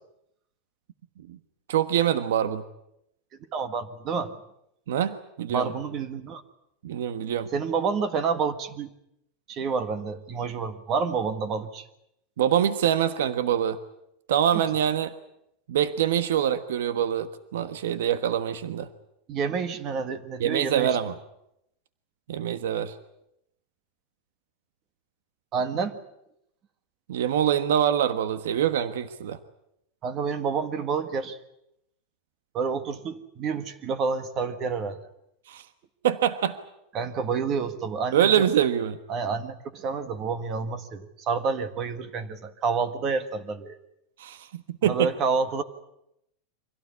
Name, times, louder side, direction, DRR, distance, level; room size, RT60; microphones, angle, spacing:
voice 1, 1.7-2.6 4.9-5.7 6.8-7.5 12.4-13.8 14.3-15.1 15.7-18.9 20.4-21.1 22.3-22.9 27.1-29.4 35.5-35.6 36.0-36.6 38.1-39.0 44.2-45.1, right 10 dB, 85° right, 12 dB, 1.3 m, -24 dB
voice 2, 3.5-4.3 5.5-6.4 7.5-8.9 9.5-11.8 14.5-14.6 19.3-21.0 25.5-26.0 30.0-31.4 32.5-35.0 36.9-38.3 39.1-43.8 44.9-45.6, right 5 dB, 30° right, 12 dB, 1.6 m, -29 dB
25.0 x 17.0 x 9.7 m, 0.79 s
supercardioid pair, 165°, 0 cm